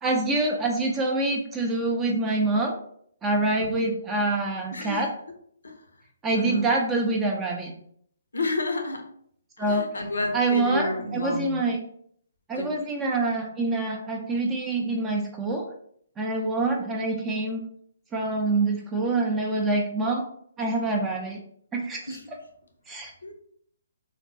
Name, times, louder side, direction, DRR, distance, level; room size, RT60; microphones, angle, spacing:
voice 1, 0.0-2.8 3.2-5.1 6.2-7.7 9.6-9.9 10.3-11.8 12.5-15.7 16.2-17.6 18.1-20.2 20.6-21.4 21.7-22.2 22.9-23.1, right 2 dB, 15° right, 1 dB, 0.4 m, -26 dB
voice 2, 3.6-3.9 4.7-5.0 5.6-5.7 6.3-6.7 8.3-9.1 9.6-11.6 12.6-12.7 22.1-22.3 23.2-23.3, left 2 dB, 80° left, 6 dB, 0.5 m, -31 dB
3.2 x 2.2 x 2.5 m, 0.65 s
figure-of-eight pair, 135°, 0 cm